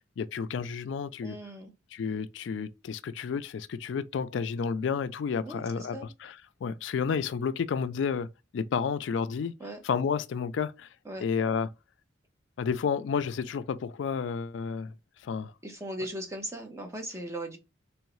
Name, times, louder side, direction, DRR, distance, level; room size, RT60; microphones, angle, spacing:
voice 1, 0.2-1.4 1.9-6.0 6.2-6.3 6.6-9.5 9.8-10.9 11.2-11.7 12.6-14.9 15.2-15.5, left 6 dB, 70° left, 0.3 m, -31 dB
voice 2, 1.2-1.7 5.4-6.1 9.6-9.8 11.0-11.2 15.6-17.6, right 1 dB, 15° right, 0.8 m, -38 dB
3.6 x 3.1 x 3.1 m
head